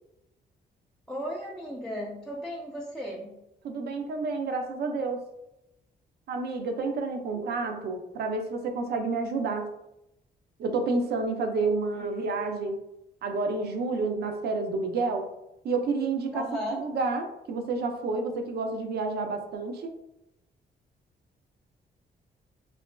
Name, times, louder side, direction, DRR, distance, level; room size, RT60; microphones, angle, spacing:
voice 1, 1.1-3.4 16.3-16.8, equal, 5° left, -3 dB, 0.3 m, -35 dB
voice 2, 3.6-5.2 6.3-9.7 10.6-12.8 13.2-15.3 15.6-16.4 16.7-19.9, right 3 dB, 65° right, 4 dB, 0.5 m, -29 dB
2.9 x 2.4 x 2.2 m, 0.88 s
cardioid pair, 100°, 18 cm